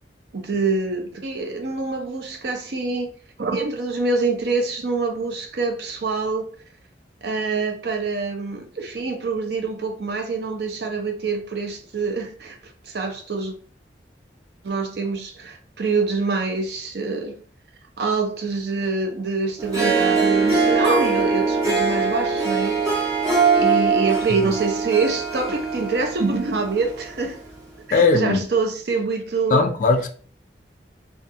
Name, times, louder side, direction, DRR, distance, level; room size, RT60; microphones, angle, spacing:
voice 1, 0.3-3.1 3.4-6.5 7.2-12.6 12.8-13.5 14.6-17.3 18.0-23.1 23.5-27.4 27.9-29.7, right 4 dB, 60° right, 0.5 m, -25 dB
Harp, 19.6-27.0, right 4 dB, 20° right, 0.6 m, -22 dB
voice 2, 27.9-28.4 29.5-30.1, left 3 dB, 45° left, 0.3 m, -18 dB
2.3 x 2.3 x 2.7 m
head